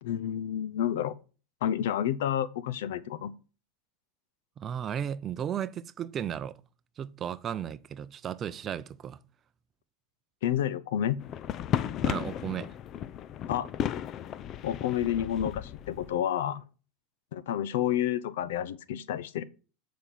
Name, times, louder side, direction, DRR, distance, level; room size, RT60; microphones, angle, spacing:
voice 1, 0.0-1.1 1.6-3.3 10.4-11.2 13.5-13.7 14.6-16.6 17.3-19.4, left 10 dB, 80° left, 0.6 m, -30 dB
voice 2, 4.6-6.5 7.0-9.2 12.0-12.7, right 9 dB, 30° right, 0.5 m, -35 dB
sound 1, 11.2-16.2, left 10 dB, 40° left, 0.5 m, -34 dB
9.0 x 5.1 x 4.3 m
supercardioid pair, 120°, 0 cm